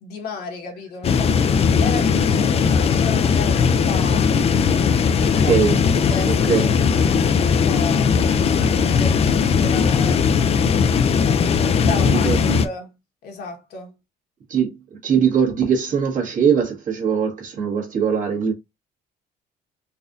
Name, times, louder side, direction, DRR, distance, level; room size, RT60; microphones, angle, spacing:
voice 1, 0.0-4.3 5.2-5.5 5.9-10.2 11.2-12.3 12.6-12.9 13.2-13.9, left 4 dB, 70° left, 1.4 m, -34 dB
sound 1, 1.0-12.7, left 6 dB, 35° left, 0.4 m, -18 dB
voice 2, 5.1-5.8 6.2-6.7 11.8-12.6 14.5-14.7 15.0-18.5, right 7 dB, 50° right, 1.5 m, -21 dB
4.0 x 2.5 x 2.5 m
cardioid pair, 110°, 17 cm